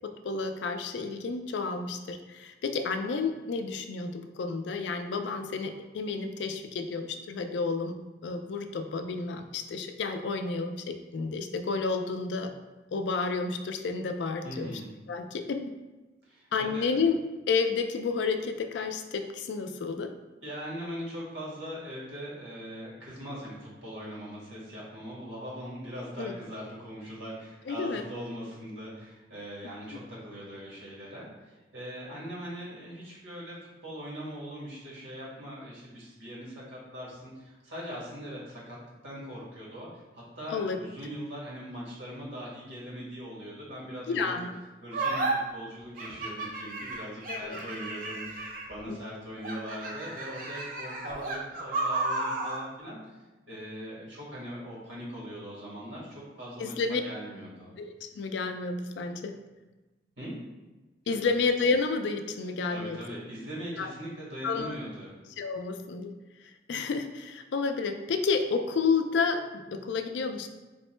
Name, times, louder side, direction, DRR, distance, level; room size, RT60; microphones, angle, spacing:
voice 1, 0.0-8.0 8.2-12.5 12.9-14.8 15.1-15.7 16.5-17.2 17.5-20.1 26.2-26.3 27.7-28.1 40.5-40.8 44.1-44.6 47.3-47.6 48.9-49.0 56.6-57.0 57.8-59.3 61.1-63.0 63.8-63.9 64.4-64.8 65.4-66.1 66.4-70.5, left 4 dB, 75° left, 7 dB, 0.3 m, -30 dB
voice 2, 14.4-14.9 16.2-16.8 20.4-38.8 39.0-44.4 44.8-53.0 53.5-57.7 60.2-60.4 62.7-65.1, equal, 90° right, -5 dB, 1.5 m, -41 dB
sound 1, 44.9-45.3 46.0-48.8 49.4-52.6, right 2 dB, 50° right, 0.5 m, -33 dB
3.6 x 2.1 x 4.2 m, 1.1 s
head